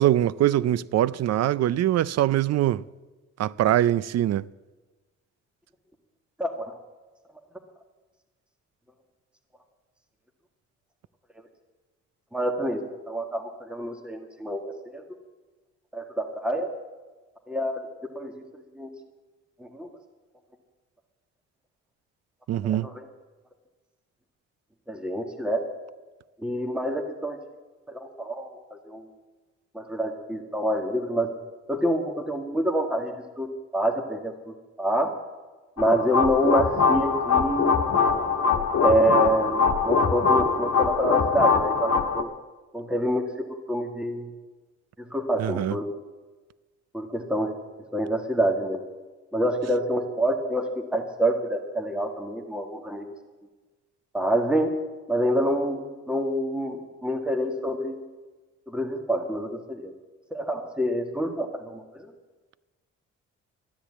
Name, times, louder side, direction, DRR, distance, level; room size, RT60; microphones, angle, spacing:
voice 1, 0.0-2.8 3.4-4.4 22.5-22.9 45.4-45.8, right 12 dB, 55° right, 0.5 m, -23 dB
voice 2, 6.4-6.8 12.3-15.0 15.9-16.7 17.5-17.9 18.1-18.4 18.7-18.9 19.6-19.9 22.6-23.1 24.9-25.6 26.4-27.4 27.9-29.1 29.7-31.3 31.7-35.1 35.8-37.8 38.8-42.3 42.7-44.3 45.1-45.9 46.9-47.6 47.9-48.8 49.3-53.1 54.1-54.8 55.1-58.0 58.7-59.9 60.3-62.1, right 1 dB, 5° right, 1.7 m, -27 dB
sound 1, 35.8-42.2, left 5 dB, 55° left, 1.4 m, -23 dB
13.0 x 10.0 x 8.5 m
cardioid pair, 90°, 30 cm